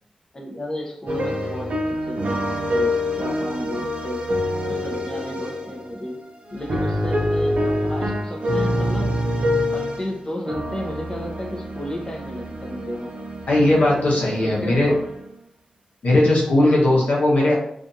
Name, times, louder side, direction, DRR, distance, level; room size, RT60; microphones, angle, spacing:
voice 1, 0.3-2.4 2.7-4.3 4.7-6.2 6.5-9.2 9.7-13.1 14.4-15.0, left 1 dB, 30° left, -1 dB, 0.6 m, -33 dB
sound 1, 1.1-6.0 6.5-10.2 10.5-15.3, left 1 dB, 65° right, 0.5 m, -26 dB
voice 2, 13.5-14.9 16.0-17.5, left 1 dB, 90° left, -4 dB, 0.9 m, -18 dB
2.5 x 2.4 x 2.7 m, 0.70 s
wide cardioid pair, 80°, 2 cm